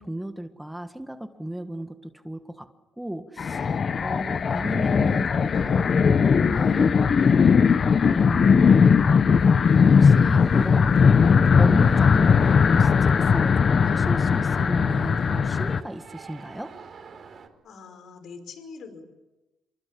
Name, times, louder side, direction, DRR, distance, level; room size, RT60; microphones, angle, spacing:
voice 1, 0.0-2.7 3.0-7.4 8.0-8.9 9.8-10.9 11.6-16.7, right 1 dB, 5° right, 7 dB, 1.6 m, -35 dB
sound 1, 3.4-15.8, left 6 dB, 45° left, 0.9 m, -19 dB
sound 2, 9.4-17.5, right 5 dB, 55° right, 4.7 m, -47 dB
voice 2, 17.6-19.0, left 5 dB, 70° left, 9 dB, 5.2 m, -43 dB
28.0 x 24.0 x 8.6 m, 1.0 s
cardioid pair, 90°, 0 cm